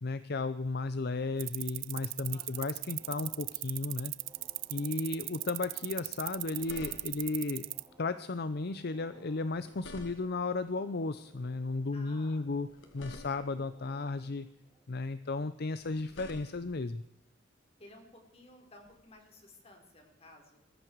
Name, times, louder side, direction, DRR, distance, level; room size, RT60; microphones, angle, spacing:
voice 1, 0.0-4.1 4.7-7.7 8.0-12.7 12.9-14.5 14.9-17.0, left 3 dB, 55° left, 13 dB, 0.6 m, -34 dB
sound 1, 1.4-7.9, right 21 dB, 80° right, 0.5 m, -37 dB
sound 2, 2.2-7.1 7.4-15.0, right 2 dB, 15° right, 4.5 m, -62 dB
voice 2, 2.3-2.7 11.9-12.5 17.8-20.7, left 1 dB, 30° left, 3 dB, 4.2 m, -56 dB
sound 3, 6.3-7.4 9.4-10.5 12.5-13.7 15.7-16.9 18.8-19.0, left 1 dB, 85° left, 2.4 m, -50 dB
21.0 x 14.5 x 4.6 m, 0.79 s
head